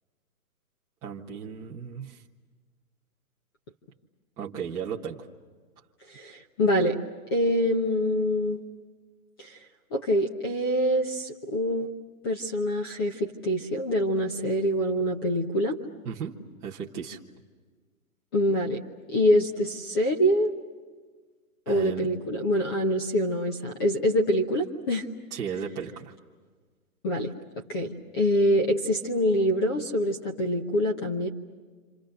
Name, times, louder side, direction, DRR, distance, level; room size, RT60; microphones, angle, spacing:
voice 1, 1.0-2.2 4.4-5.3 16.0-17.2 21.7-22.1 25.3-26.1, right 7 dB, 10° right, -5 dB, 1.1 m, -35 dB
voice 2, 6.1-7.0 7.3-8.6 9.4-9.6 9.9-11.9 12.2-15.8 18.3-18.8 19.1-20.5 21.7-25.1 27.0-27.3 27.7-31.3, equal, 15° left, 2 dB, 0.9 m, -25 dB
29.5 x 27.0 x 6.6 m, 1.4 s
hypercardioid pair, 175°, 44 cm